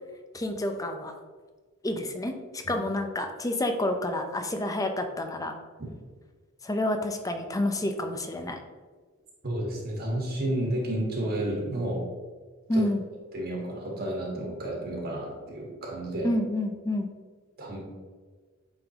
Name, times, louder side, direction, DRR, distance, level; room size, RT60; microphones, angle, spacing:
voice 1, 0.3-1.1 1.8-5.5 6.6-8.6 12.7-13.0 16.2-17.1, left 1 dB, 15° left, 6 dB, 0.6 m, -29 dB
voice 2, 9.4-12.0 12.7-12.8 13.3-16.3 17.6-17.8, right 1 dB, 50° right, -2 dB, 1.5 m, -31 dB
8.7 x 3.8 x 2.9 m, 1.5 s
head